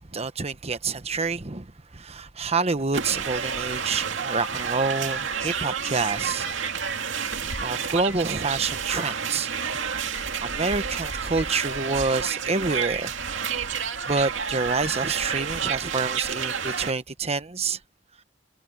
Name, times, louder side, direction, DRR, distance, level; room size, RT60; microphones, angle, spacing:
voice 1, 0.0-6.5 7.6-9.5 10.4-13.1 13.7-17.8, right 4 dB, 35° right, 1.1 m, -28 dB
sound 1, 2.9-16.9, right 6 dB, 75° right, 2.4 m, -30 dB
head